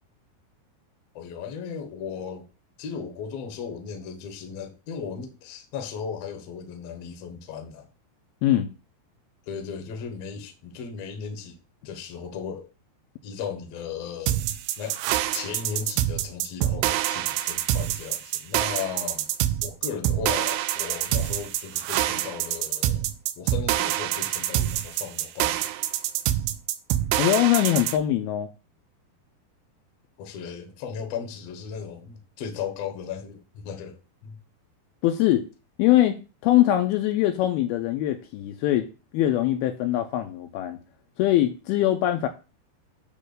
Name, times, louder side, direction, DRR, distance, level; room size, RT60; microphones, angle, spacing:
voice 1, 1.1-2.5 2.8-7.9 9.4-11.6 11.8-12.7 13.2-14.4 14.8-15.0 15.3-19.3 19.6-23.1 23.4-25.6 30.2-34.4, left 7 dB, 70° left, 1.6 m, -36 dB
sound 1, 14.3-28.0, right 13 dB, 80° right, 2.5 m, -26 dB
voice 2, 27.2-28.5 35.0-35.5 35.8-38.9 39.1-40.8 41.2-42.3, left 13 dB, 85° left, 2.3 m, -22 dB
8.8 x 3.1 x 6.5 m
omnidirectional pair, 4.9 m